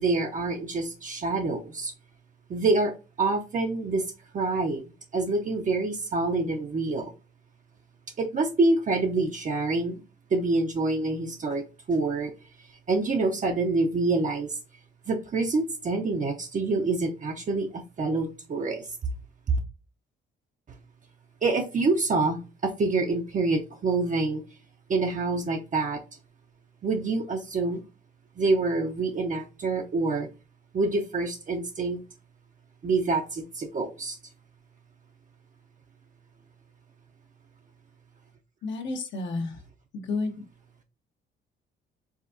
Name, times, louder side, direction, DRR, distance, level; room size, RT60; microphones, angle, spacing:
voice 1, 0.0-1.9 2.5-2.9 3.2-4.1 4.3-4.8 5.1-7.1 8.2-10.0 10.3-12.3 12.9-14.6 15.1-18.9 19.5-19.6 21.4-24.4 24.9-26.0 26.8-27.8 28.4-30.3 30.7-32.0 32.8-34.2, right 3 dB, 40° right, 0.7 m, -26 dB
voice 2, 38.6-39.6 39.9-40.3, left 3 dB, 65° left, 1.1 m, -31 dB
4.9 x 3.4 x 2.7 m
cardioid pair, 90°, 20 cm